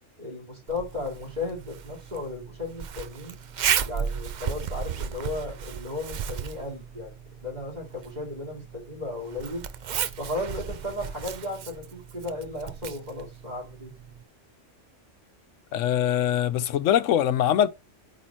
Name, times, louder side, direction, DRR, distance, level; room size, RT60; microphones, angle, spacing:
voice 1, 0.2-3.4 3.9-7.1 7.4-9.6 10.2-13.9, left 2 dB, 35° right, 3.0 m, -35 dB
Zipper (clothing), 0.7-14.2, right 8 dB, 55° right, 0.5 m, -34 dB
voice 2, 15.7-17.7, left 10 dB, 80° left, 1.0 m, -22 dB
8.5 x 3.7 x 4.3 m
omnidirectional pair, 1.3 m